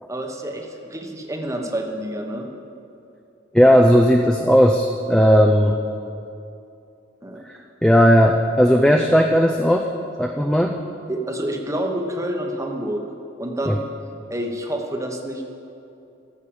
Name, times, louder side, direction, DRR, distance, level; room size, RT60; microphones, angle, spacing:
voice 1, 0.1-2.5 7.2-7.4 11.1-13.0 13.4-13.8 14.3-15.4, right 1 dB, 15° right, 2 dB, 1.0 m, -28 dB
voice 2, 3.5-5.8 7.8-9.9 10.2-10.8 13.7-13.8, equal, 5° left, 3 dB, 0.5 m, -16 dB
13.5 x 6.5 x 8.7 m, 2.6 s
head